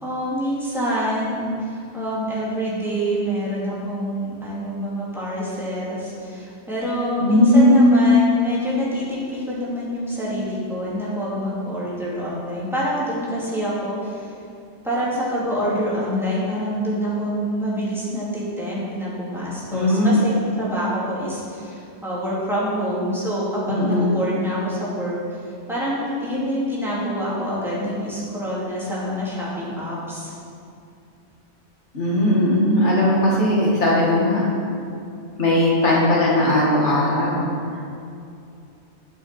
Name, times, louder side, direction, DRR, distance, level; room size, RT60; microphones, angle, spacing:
voice 1, 0.0-14.3 14.8-25.2 25.7-30.3, equal, ahead, -8 dB, 2.5 m, -26 dB
voice 2, 7.2-7.9 19.7-20.2 23.7-24.1 31.9-34.4 35.4-37.5, left 1 dB, 85° left, -5 dB, 2.2 m, -18 dB
12.5 x 5.7 x 4.4 m, 2.5 s
omnidirectional pair, 1.2 m